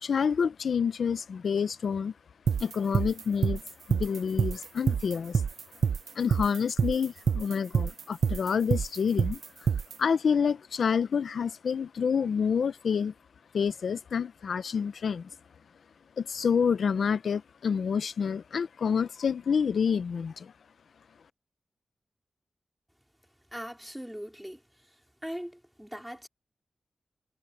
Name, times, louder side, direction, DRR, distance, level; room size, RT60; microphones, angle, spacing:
voice 1, 0.0-2.1 2.6-3.6 3.9-5.5 6.1-9.7 10.0-13.1 13.5-15.4 16.2-20.5, left 6 dB, 90° left, 0.6 m, -28 dB
sound 1, 2.5-9.9, right 6 dB, 80° right, 0.5 m, -26 dB
voice 2, 23.5-24.6 25.2-26.3, equal, 5° right, 4.1 m, -40 dB
wide cardioid pair, 155°, 0 cm